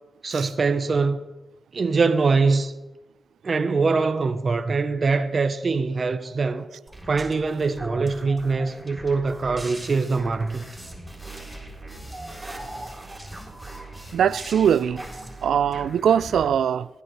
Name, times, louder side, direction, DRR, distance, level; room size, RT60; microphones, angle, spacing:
voice 1, 0.2-1.2 1.7-2.7 3.4-6.7 7.1-10.6, right 4 dB, 45° right, 0.8 m, -23 dB
sound 1, 6.9-16.5, right 1 dB, 15° right, 3.9 m, -40 dB
sound 2, 9.8-15.2, equal, 10° left, 5.9 m, -48 dB
voice 2, 14.1-15.0 15.4-16.9, right 8 dB, 85° right, 0.3 m, -21 dB
18.5 x 12.0 x 3.2 m
cardioid pair, 80°, 0 cm